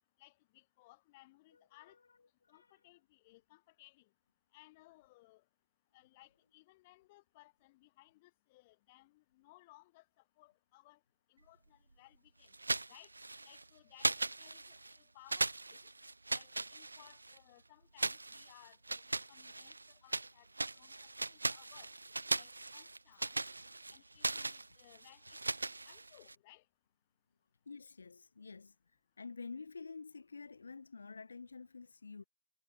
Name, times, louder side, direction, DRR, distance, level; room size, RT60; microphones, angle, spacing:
voice 1, 0.2-2.0 2.5-4.1 4.5-5.4 5.9-11.0 11.3-12.5 12.9-13.1 13.4-15.8 16.3-21.9 22.4-23.4 23.9-25.4 25.9-26.6, left 20 dB, 45° left, 7.5 m, -63 dB
sound 1, 12.5-13.6 14.0-15.0 15.3-17.4 18.0-20.3 20.6-26.4, right 2 dB, 90° right, 0.9 m, -38 dB
voice 2, 27.7-28.7 29.2-32.2, left 4 dB, 80° left, 2.4 m, -49 dB
figure-of-eight pair, 115°, 0 cm